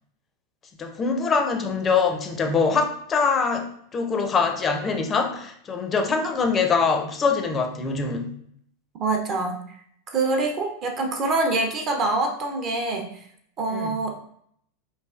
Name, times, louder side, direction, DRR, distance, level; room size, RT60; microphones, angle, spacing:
voice 1, 0.8-8.3 13.7-14.0, left 5 dB, 25° left, 5 dB, 0.4 m, -24 dB
voice 2, 9.0-9.8 10.1-13.2 13.6-14.1, right 2 dB, 40° right, 3 dB, 0.6 m, -25 dB
3.1 x 2.4 x 2.4 m, 0.67 s
hypercardioid pair, 90°, 0 cm